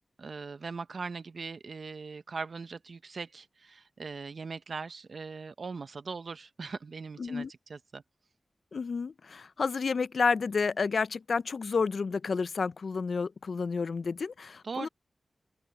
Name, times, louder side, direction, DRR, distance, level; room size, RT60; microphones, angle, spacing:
voice 1, 0.2-8.0 14.6-14.9, right 4 dB, 70° right, 0.7 m, -40 dB
voice 2, 7.2-7.5 8.7-14.9, left 5 dB, 75° left, 0.4 m, -30 dB
open air
cardioid pair, 55°, 0 cm